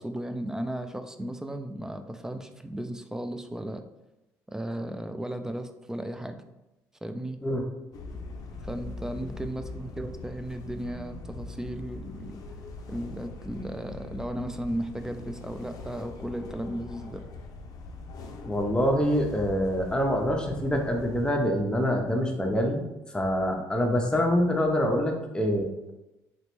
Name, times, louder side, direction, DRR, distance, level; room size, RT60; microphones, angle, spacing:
voice 1, 0.0-3.8 4.5-6.4 7.0-7.4 8.6-12.6 12.9-17.2, right 1 dB, 5° right, 8 dB, 0.3 m, -35 dB
sound 1, 7.9-21.3, left 3 dB, 55° left, 0.5 m, -42 dB
voice 2, 18.4-25.9, equal, 10° left, 2 dB, 0.7 m, -26 dB
3.1 x 3.0 x 3.0 m, 0.98 s
supercardioid pair, 85°, 7 cm